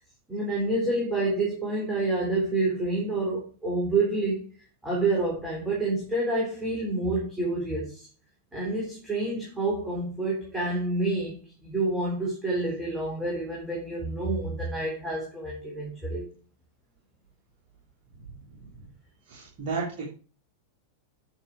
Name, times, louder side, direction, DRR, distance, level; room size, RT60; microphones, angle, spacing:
voice 1, 0.3-4.5 4.8-8.1 8.5-16.3, right 2 dB, 10° right, 3.7 m, -28 dB
voice 2, 19.3-20.1, right 4 dB, 45° right, 3.0 m, -33 dB
9.0 x 6.7 x 4.9 m
figure-of-eight pair, 90°, 0 cm